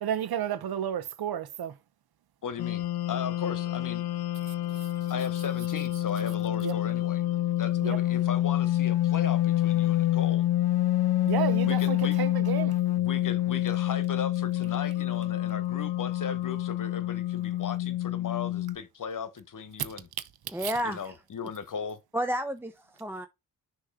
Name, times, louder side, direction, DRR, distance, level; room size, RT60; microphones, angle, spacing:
voice 1, 0.0-1.8 6.6-6.7 7.8-8.0 11.2-12.7 20.6-20.7, right 10 dB, 75° right, 0.8 m, -31 dB
voice 2, 2.4-4.1 5.1-7.2 7.6-10.5 11.7-12.2 13.0-20.1 20.8-22.0, left 6 dB, 55° left, 1.1 m, -37 dB
sound 1, 2.6-18.8, left 14 dB, 90° left, 0.5 m, -27 dB
voice 3, 20.5-21.1 22.1-23.3, equal, 5° right, 0.6 m, -31 dB
6.5 x 3.1 x 4.8 m
cardioid pair, 70°, 37 cm